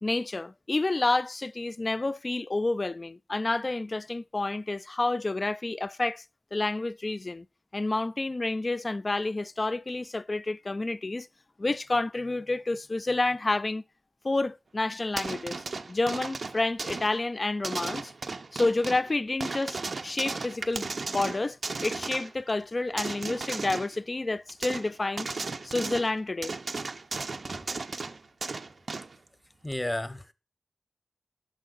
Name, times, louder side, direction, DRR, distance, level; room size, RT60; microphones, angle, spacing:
voice 1, 0.0-6.2 6.5-7.5 7.7-11.3 11.6-13.8 14.2-18.1 18.5-25.3 25.6-26.6, left 2 dB, 40° left, 0.3 m, -29 dB
sound 1, 15.1-17.2 17.6-19.1 19.4-22.4 23.0-24.0 24.5-24.9 25.2-26.1 26.4-29.2 29.7-29.8, right 3 dB, 65° right, 0.6 m, -35 dB
voice 2, 29.6-30.3, left 1 dB, 15° left, 0.7 m, -33 dB
6.2 x 5.2 x 3.9 m
cardioid pair, 55°, 0 cm